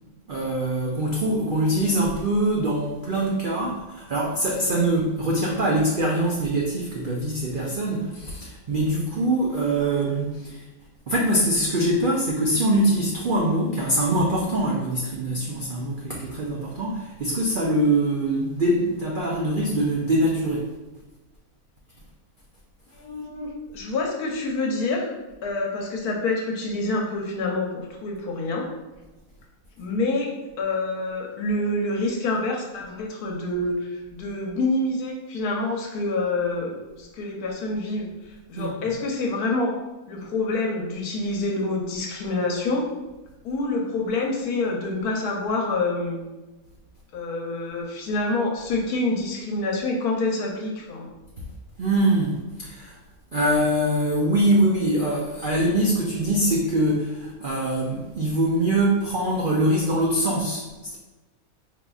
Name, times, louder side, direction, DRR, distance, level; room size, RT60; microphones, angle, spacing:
voice 1, 0.3-10.6 11.1-20.7 38.6-38.7 51.8-53.0 53.3-61.0, right 1 dB, 80° right, -3 dB, 0.4 m, -23 dB
voice 2, 22.9-25.1 25.4-28.7 29.8-39.7 40.1-42.9 43.4-46.2 47.1-51.1, left 2 dB, 85° left, 0 dB, 1.3 m, -27 dB
5.1 x 2.9 x 2.3 m, 1.1 s
omnidirectional pair, 1.6 m